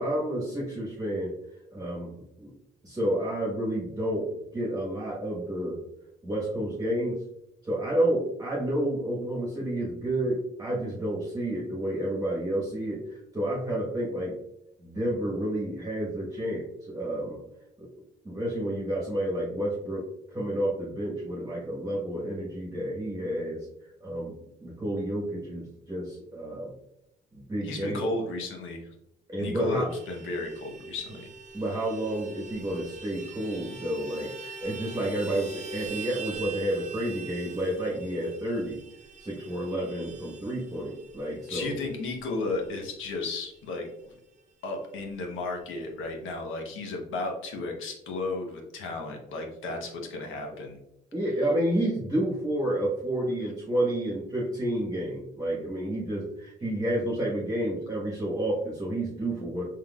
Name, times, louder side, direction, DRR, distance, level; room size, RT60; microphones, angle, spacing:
voice 1, 0.0-1.3 1.7-2.1 2.4-2.5 2.8-5.8 6.2-7.2 7.6-14.4 14.8-17.4 17.8-17.9 18.2-23.7 24.0-24.3 24.6-26.7 27.3-28.0 29.3-29.9 31.5-38.8 39.2-41.8 49.7-49.8 50.5-50.6 51.1-59.6, right 1 dB, 20° right, -5 dB, 1.2 m, -30 dB
voice 2, 27.6-28.9 29.4-31.3 41.5-43.9 44.6-50.8, left 3 dB, 85° left, 2 dB, 1.0 m, -34 dB
Vehicle horn car horn honking, 29.9-43.8 44.1-44.2 44.5-44.7 44.9-45.6, right 5 dB, 35° right, 0.7 m, -44 dB
4.6 x 3.7 x 2.3 m, 0.83 s
cardioid pair, 90°, 20 cm